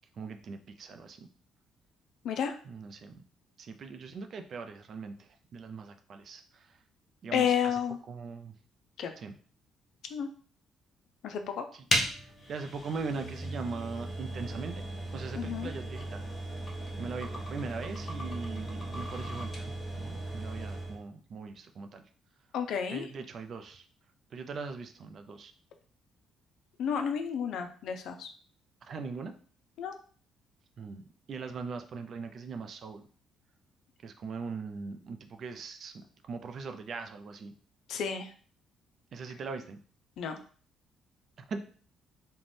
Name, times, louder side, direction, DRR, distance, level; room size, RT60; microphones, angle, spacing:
voice 1, 0.2-1.3 2.6-3.2 3.6-6.8 7.2-7.8 8.1-8.6 9.2-9.3 11.7-11.9 12.2-14.8 15.1-16.5 17.0-22.1 22.9-23.9 24.3-25.5 28.8-29.3 30.8-31.0 31.3-33.0 34.0-37.5 39.1-39.8 41.5-41.6, right 4 dB, 55° right, 7 dB, 0.4 m, -40 dB
voice 2, 2.2-2.6 7.3-8.0 9.0-9.1 10.1-10.3 11.2-11.6 15.4-15.7 22.5-23.1 26.8-28.3 29.8-29.9 37.9-38.3 40.2-40.4, left 7 dB, 70° left, 7 dB, 0.4 m, -31 dB
sound 1, 11.9-21.0, right 1 dB, 35° left, 0.8 m, -36 dB
2.5 x 2.1 x 3.3 m, 0.43 s
hypercardioid pair, 55°, 0 cm